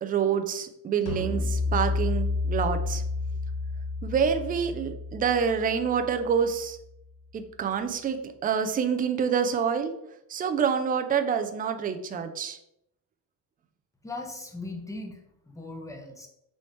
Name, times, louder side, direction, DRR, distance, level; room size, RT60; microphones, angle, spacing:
voice 1, 0.0-3.0 4.0-6.8 7.3-9.9 10.3-12.6, right 7 dB, 25° right, 7 dB, 0.3 m, -27 dB
sound 1, 1.1-6.5, left 3 dB, 50° left, 1.0 m, -30 dB
voice 2, 14.0-16.3, left 2 dB, 10° left, 2 dB, 0.7 m, -39 dB
4.1 x 3.1 x 3.2 m, 0.77 s
cardioid pair, 110°, 41 cm